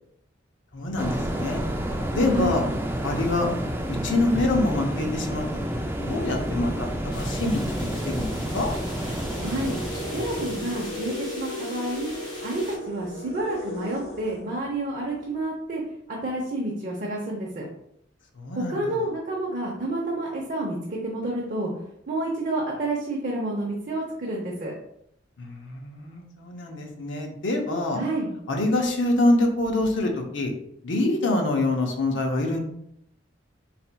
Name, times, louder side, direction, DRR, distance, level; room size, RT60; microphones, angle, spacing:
voice 1, 0.7-1.6 2.1-2.6 3.0-3.5 3.9-5.4 6.0-8.7 18.3-19.0 25.4-28.0 28.5-30.5 30.8-32.6, left 2 dB, 70° left, 3 dB, 0.7 m, -25 dB
sound 1, 1.0-11.2, equal, 10° right, 0.3 m, -30 dB
voice 2, 2.3-2.6 9.4-9.7 10.1-12.1 12.4-15.8 16.1-17.6 18.6-21.7 22.1-24.7 27.9-28.3, right 1 dB, 40° right, -3 dB, 0.7 m, -29 dB
sound 2, 5.6-15.1, left 1 dB, 50° left, 1.5 m, -38 dB
sound 3, 7.1-12.8, left 1 dB, 25° left, 1.6 m, -41 dB
4.2 x 4.1 x 2.2 m, 0.74 s
head